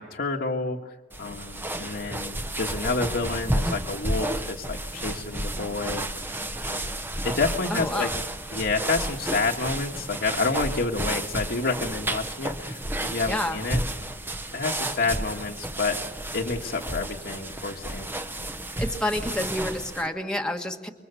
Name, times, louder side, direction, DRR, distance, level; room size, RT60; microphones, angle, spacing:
voice 1, 0.0-6.1 6.7-7.0 7.2-8.1 8.5-14.2 14.5-16.0 16.3-18.2, left 3 dB, 65° left, -2 dB, 1.6 m, -29 dB
sound 1, 1.1-20.1, right 1 dB, 10° right, 1.1 m, -32 dB
voice 2, 7.7-8.1 13.3-13.6 18.8-20.9, left 1 dB, 5° left, 2 dB, 1.5 m, -29 dB
27.5 x 24.0 x 6.9 m, 1.1 s
head